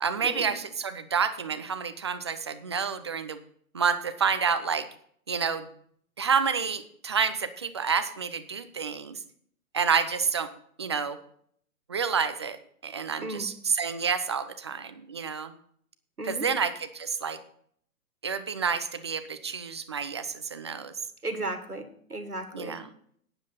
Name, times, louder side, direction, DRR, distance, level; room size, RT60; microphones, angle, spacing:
voice 1, 0.0-3.4 3.7-4.9 5.3-5.7 6.2-9.1 9.7-10.5 10.8-11.2 11.9-12.6 12.8-15.5 16.3-17.4 18.2-20.9 22.5-22.9, right 6 dB, 20° right, 10 dB, 0.4 m, -29 dB
voice 2, 13.2-13.5 16.2-16.5 21.2-22.8, right 2 dB, 85° right, 9 dB, 1.9 m, -35 dB
12.0 x 9.7 x 4.1 m, 0.62 s
figure-of-eight pair, 120°, 44 cm